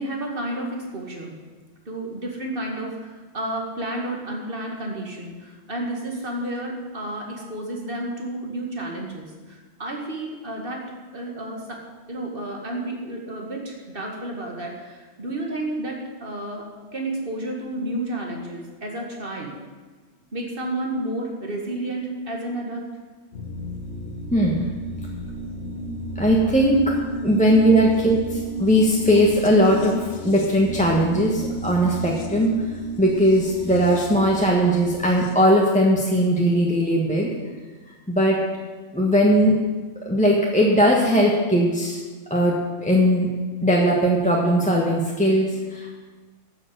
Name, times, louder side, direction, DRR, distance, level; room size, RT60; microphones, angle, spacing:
voice 1, 0.0-1.4 1.9-11.8 12.1-19.5 20.3-22.9 27.5-27.6, right 1 dB, 45° right, 1 dB, 2.3 m, -31 dB
sound 1, 23.3-35.3, right 1 dB, 70° left, 1.7 m, -33 dB
voice 2, 26.2-26.8 27.2-29.9 30.2-32.5 33.0-37.3 38.1-38.4 38.9-39.5 40.0-42.0 42.3-42.5 42.8-43.3 43.6-45.9, equal, 5° left, -3 dB, 1.5 m, -19 dB
12.0 x 7.5 x 8.0 m, 1.3 s
omnidirectional pair, 1.3 m